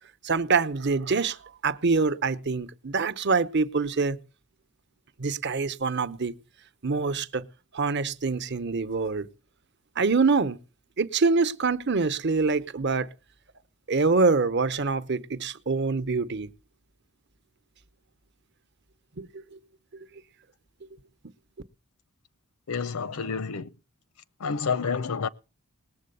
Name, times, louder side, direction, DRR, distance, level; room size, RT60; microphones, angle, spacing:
voice 1, 0.2-4.2 5.2-6.3 6.8-7.4 7.7-9.3 10.0-10.6 11.0-13.1 13.9-16.5 19.2-19.4, right 4 dB, 50° right, 0.9 m, -25 dB
voice 2, 22.7-23.7 24.4-25.3, left 5 dB, 80° left, 0.7 m, -29 dB
19.5 x 7.7 x 6.8 m
head